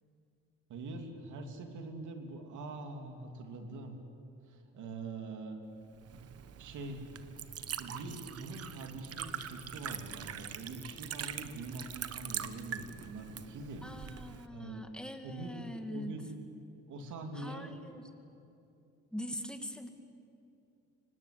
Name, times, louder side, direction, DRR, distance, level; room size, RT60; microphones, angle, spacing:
voice 1, 0.7-4.0 4.5-5.6 6.6-7.0 7.8-13.9 14.5-14.8 15.2-15.6 15.9-16.3 16.9-17.7, right 2 dB, 80° right, 4 dB, 2.8 m, -44 dB
Liquid, 5.9-14.5, right 8 dB, 55° right, 1.0 m, -43 dB
voice 2, 13.8-16.2 17.3-18.0 19.1-19.9, equal, 5° left, 5 dB, 2.1 m, -42 dB
24.5 x 18.5 x 8.5 m, 2.7 s
cardioid pair, 90°, 30 cm